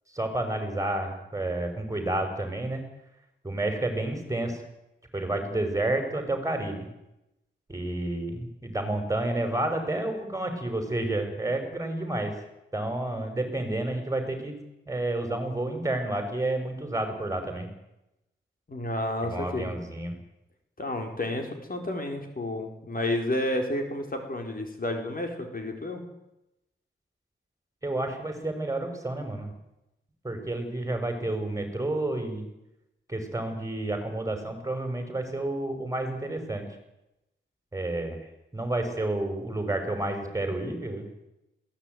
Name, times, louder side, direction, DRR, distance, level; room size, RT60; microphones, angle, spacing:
voice 1, 0.1-2.8 3.4-4.6 5.1-6.9 7.7-12.3 12.7-14.6 14.9-17.7 19.2-20.2 27.8-29.5 30.2-32.5 33.1-36.7 37.7-38.2 38.5-41.1, right 2 dB, 15° right, 5 dB, 5.9 m, -30 dB
voice 2, 18.7-19.7 20.8-26.0, left 1 dB, 45° left, 4 dB, 4.6 m, -31 dB
21.5 x 17.5 x 9.4 m, 0.87 s
wide cardioid pair, 100°, 21 cm